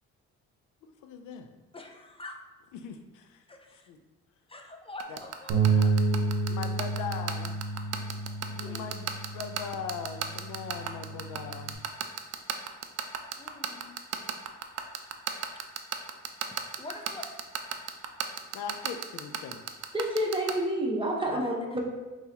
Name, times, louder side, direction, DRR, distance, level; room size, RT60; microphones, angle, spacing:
voice 1, 0.8-1.5 2.7-3.4 3.7-4.0 5.1-5.2 6.5-7.6 8.5-11.9 18.5-19.6 21.3-21.5, left 7 dB, 85° left, 7 dB, 0.5 m, -40 dB
voice 2, 1.7-2.4 3.5-3.9 4.5-6.0 8.6-8.9 13.4-14.0 16.8-17.3 21.4-21.5, left 2 dB, 20° left, 3 dB, 0.5 m, -45 dB
sound 1, 5.0-20.5, right 10 dB, 55° right, 0.5 m, -32 dB
Bass guitar, 5.5-11.7, right 4 dB, 90° right, 0.7 m, -30 dB
voice 3, 19.9-21.8, right 1 dB, 15° right, -1 dB, 0.9 m, -29 dB
5.3 x 3.0 x 2.8 m, 1.2 s
cardioid pair, 90°, 30 cm